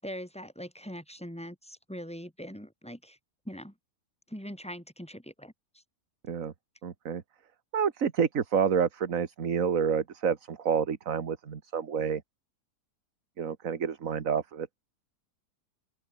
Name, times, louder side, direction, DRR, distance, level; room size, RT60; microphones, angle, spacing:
voice 1, 0.0-3.2 3.4-3.7 4.3-5.8, equal, 5° left, 6.4 m, -42 dB
voice 2, 6.8-7.2 7.7-12.2 13.4-14.7, right 7 dB, 60° right, 1.9 m, -28 dB
omnidirectional pair, 1.7 m